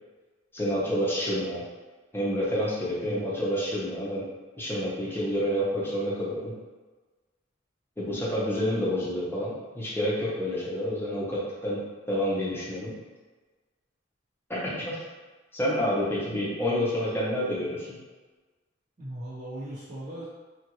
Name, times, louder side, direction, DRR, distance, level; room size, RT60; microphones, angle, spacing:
voice 1, 0.5-1.6 2.1-4.3 4.6-6.5 8.0-11.8 12.1-12.9 14.5-15.0 15.5-18.0, equal, 10° left, -7 dB, 0.8 m, -28 dB
voice 2, 19.0-20.3, right 1 dB, 45° right, -9 dB, 1.1 m, -38 dB
2.9 x 2.4 x 3.0 m, 1.3 s
head